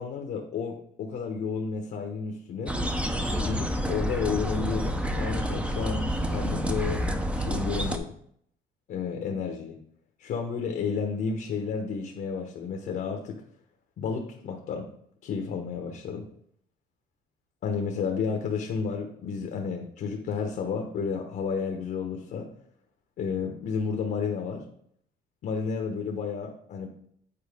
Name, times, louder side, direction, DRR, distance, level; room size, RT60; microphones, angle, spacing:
voice 1, 0.0-2.8 3.4-7.0 7.4-8.1 8.9-9.8 10.2-13.4 14.0-14.9 15.2-16.3 17.6-22.5 23.2-24.6 25.4-26.9, left 5 dB, 60° left, 3 dB, 1.0 m, -31 dB
sound 1, 2.7-8.0, equal, 5° right, 0.6 m, -29 dB
8.7 x 4.3 x 3.6 m, 0.67 s
cardioid pair, 110°, 17 cm